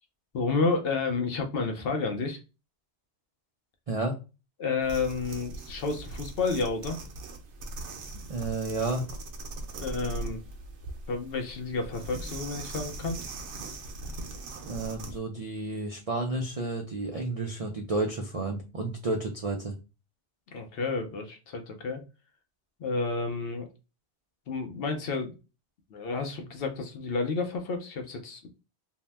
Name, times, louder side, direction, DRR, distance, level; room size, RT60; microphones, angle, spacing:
voice 1, 0.3-2.4 4.6-7.0 9.8-10.4 11.1-13.2 20.5-22.0 22.8-23.7 24.5-25.3 25.9-28.5, left 4 dB, 65° left, 4 dB, 0.8 m, -30 dB
voice 2, 3.9-4.2 8.3-9.1 14.6-19.7, right 2 dB, 60° right, 2 dB, 0.3 m, -31 dB
sound 1, 4.8-15.2, right 2 dB, 80° right, 0.9 m, -40 dB
2.7 x 2.1 x 3.1 m, 0.30 s
omnidirectional pair, 1.2 m